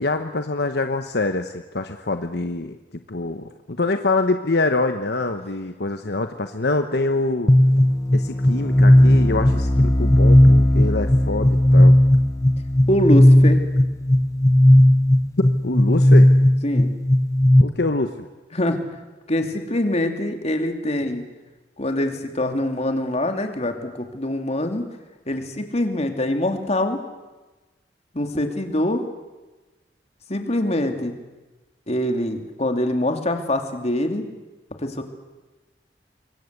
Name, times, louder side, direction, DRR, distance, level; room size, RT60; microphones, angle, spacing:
voice 1, 0.0-7.5 8.1-12.0 15.4-16.3 17.6-18.3, left 2 dB, 65° left, 7 dB, 1.2 m, -25 dB
sound 1, 7.5-17.6, left 1 dB, 20° left, 1.0 m, -15 dB
voice 2, 12.9-13.6 16.6-16.9 18.5-18.8 19.3-21.2 21.8-24.8 25.3-27.0 28.1-29.0 30.3-31.1 31.9-34.3 34.8-35.0, left 1 dB, 40° left, 5 dB, 2.8 m, -24 dB
26.5 x 22.5 x 8.2 m, 1.2 s
head